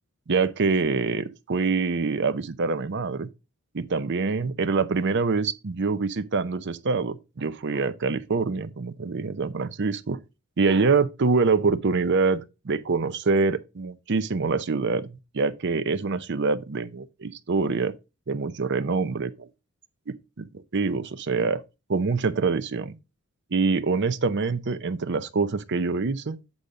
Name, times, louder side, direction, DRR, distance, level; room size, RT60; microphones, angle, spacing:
voice 1, 0.3-3.3 3.7-10.2 10.6-17.9 18.3-19.5 20.4-21.6 21.9-23.0 23.5-26.4, right 4 dB, 55° right, 0.6 m, -25 dB
8.4 x 4.0 x 4.9 m
head